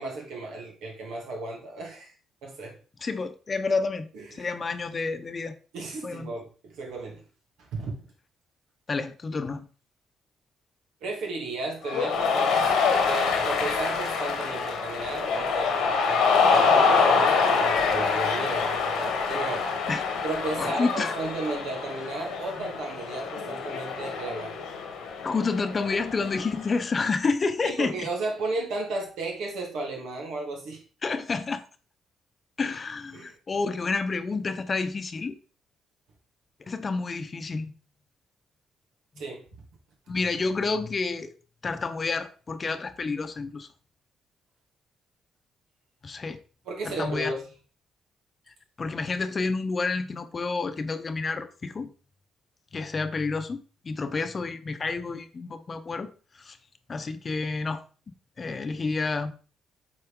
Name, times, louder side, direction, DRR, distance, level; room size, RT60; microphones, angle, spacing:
voice 1, 0.0-2.1 2.4-2.8 4.1-4.5 5.7-7.2 7.7-7.9 11.0-12.7 13.1-19.7 20.2-24.5 27.6-30.8 33.1-33.3 39.2-39.4 46.7-47.4, right 2 dB, 85° right, 2.6 m, -34 dB
voice 2, 3.0-5.6 6.0-6.3 8.9-9.7 19.9-20.0 20.6-21.1 25.2-28.1 31.0-31.6 32.6-35.4 36.7-37.7 39.2-39.3 40.1-41.3 41.6-43.7 46.0-46.4 46.8-47.3 48.8-51.9 52.7-56.6 56.9-57.8 58.4-59.3, left 4 dB, 35° left, 0.8 m, -29 dB
Cheering, 11.9-26.7, left 5 dB, 85° left, 1.5 m, -25 dB
7.8 x 4.3 x 3.7 m
cardioid pair, 90°, 0 cm